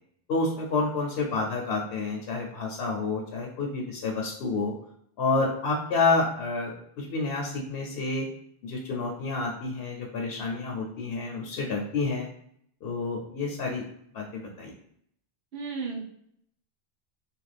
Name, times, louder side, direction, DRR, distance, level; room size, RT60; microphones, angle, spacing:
voice 1, 0.3-4.7 5.2-8.3 8.6-12.3 12.8-13.8 14.1-14.7, left 3 dB, 70° left, -1 dB, 0.8 m, -29 dB
voice 2, 15.5-16.0, right 4 dB, 75° right, -1 dB, 1.0 m, -34 dB
3.0 x 2.4 x 3.2 m, 0.70 s
omnidirectional pair, 1.1 m